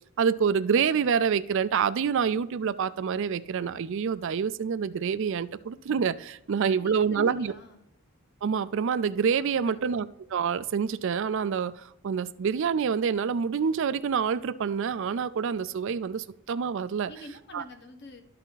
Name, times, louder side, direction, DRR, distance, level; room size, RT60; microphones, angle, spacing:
voice 1, 0.2-7.5 8.4-17.1 17.5-17.6, right 6 dB, 60° right, 14 dB, 0.4 m, -27 dB
voice 2, 6.5-7.9 9.5-10.0 17.1-18.2, left 1 dB, 50° left, 4 dB, 1.2 m, -46 dB
12.5 x 4.1 x 3.9 m, 0.83 s
head